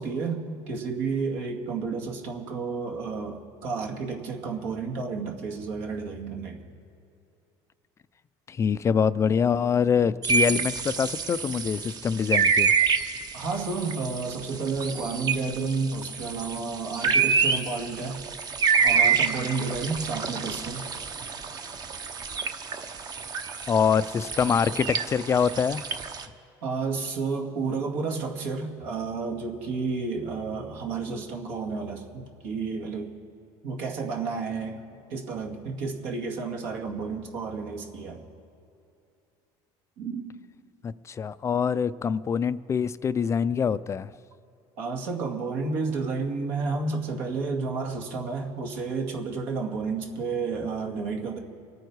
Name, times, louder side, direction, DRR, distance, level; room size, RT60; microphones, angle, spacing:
voice 1, 0.0-6.6 13.3-18.2 18.8-20.9 26.6-33.1 33.6-34.8 35.1-38.2 40.0-40.2 44.8-51.4, right 4 dB, 75° right, 1 dB, 2.3 m, -31 dB
voice 2, 8.5-12.7 23.7-25.8 40.8-44.1, left 7 dB, 25° left, 15 dB, 0.3 m, -25 dB
sound 1, 10.2-26.2, right 5 dB, 35° right, 0.9 m, -27 dB
26.0 x 9.4 x 4.7 m, 2.6 s
supercardioid pair, 120°, 11 cm